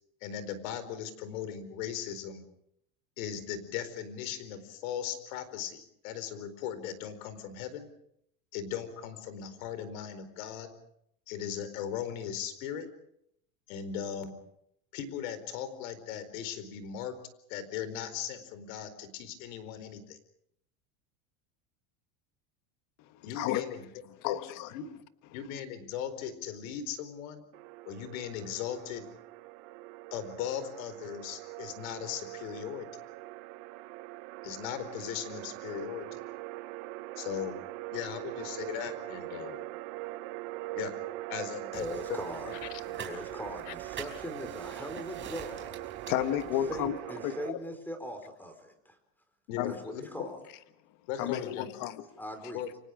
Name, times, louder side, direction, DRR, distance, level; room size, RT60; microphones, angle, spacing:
voice 1, 0.2-2.5 3.2-7.9 8.5-10.7 11.3-12.9 13.7-14.4 14.9-17.2 17.5-20.2 23.2-23.9 24.2-24.4 24.7-24.9 25.3-27.4 27.9-29.1 30.1-33.0 34.4-36.2 37.2-37.6 37.9-39.6 40.8-40.9 41.3-42.2 49.5-50.3 51.1-51.7 52.5-52.7, left 9 dB, 75° left, 12 dB, 4.5 m, -38 dB
voice 2, 23.1-23.6 24.2-24.7 42.9-43.0 46.1-47.0 47.2-47.3 49.6-49.8 51.2-52.0, left 12 dB, 50° left, 10 dB, 1.4 m, -32 dB
sound 1, 27.5-47.5, right 19 dB, 65° right, 1.2 m, -42 dB
voice 3, 41.6-42.5 42.9-46.1 46.7-49.0 49.7-50.4 51.2-51.4 52.2-52.6, equal, 5° left, 8 dB, 4.7 m, -41 dB
sound 2, 41.7-46.9, right 8 dB, 30° right, 4.9 m, -47 dB
30.0 x 25.0 x 5.2 m, 0.74 s
supercardioid pair, 140°, 42 cm